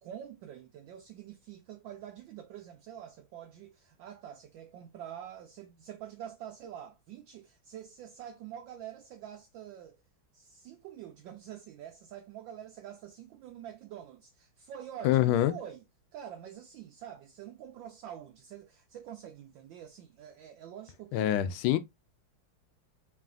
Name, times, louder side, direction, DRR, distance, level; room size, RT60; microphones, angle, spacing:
voice 1, 0.0-10.0 10.3-15.8 16.1-21.4, right 10 dB, 75° right, 1.2 m, -46 dB
voice 2, 15.0-15.6 21.1-21.8, left 12 dB, 80° left, 1.4 m, -25 dB
4.8 x 3.1 x 2.4 m
omnidirectional pair, 2.3 m